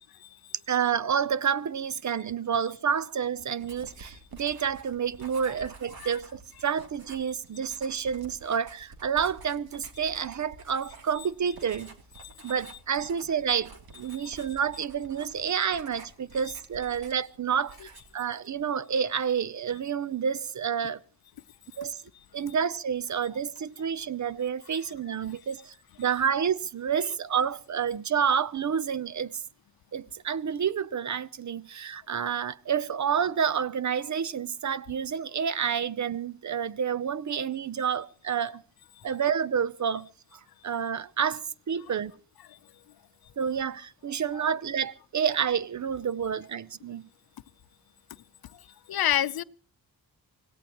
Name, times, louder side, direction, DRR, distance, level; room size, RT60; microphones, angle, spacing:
voice 1, 0.7-11.9 12.4-21.0 21.8-22.0 22.3-29.4 29.9-38.6 39.0-42.1 43.4-47.1, right 7 dB, 50° right, 0.7 m, -29 dB
Writing, 3.6-17.4 17.7-18.2, right 3 dB, 80° right, 3.1 m, -50 dB
voice 2, 12.2-12.6 14.1-14.4 27.0-27.1 44.3-44.5 48.5-49.4, left 11 dB, 80° left, 0.7 m, -30 dB
25.5 x 17.5 x 3.0 m
wide cardioid pair, 120°, 36 cm